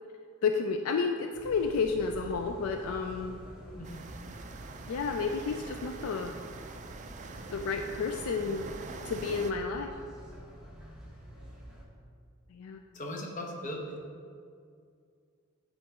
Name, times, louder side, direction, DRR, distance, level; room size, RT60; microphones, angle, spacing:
voice 1, 0.4-3.4 4.9-6.3 7.5-8.7 9.0-9.9 12.5-12.8, left 5 dB, 70° left, 5 dB, 0.3 m, -31 dB
sound 1, 1.3-11.8, equal, 5° right, 1.1 m, -48 dB
voice 2, 3.7-4.0 12.9-14.0, left 1 dB, 35° left, 0 dB, 0.9 m, -38 dB
sound 2, 3.8-9.5, right 4 dB, 35° right, 0.3 m, -45 dB
8.9 x 4.0 x 3.5 m, 2.2 s
head